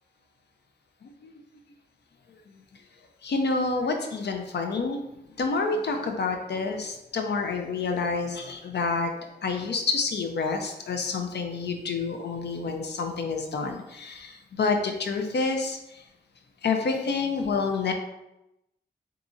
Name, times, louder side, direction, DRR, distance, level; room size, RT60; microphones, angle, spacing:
voice 1, 3.2-5.0 5.4-9.1 9.4-16.0 16.6-17.9, left 4 dB, 75° left, 4 dB, 0.5 m, -28 dB
3.6 x 2.9 x 2.5 m, 0.90 s
cardioid pair, 60°, 18 cm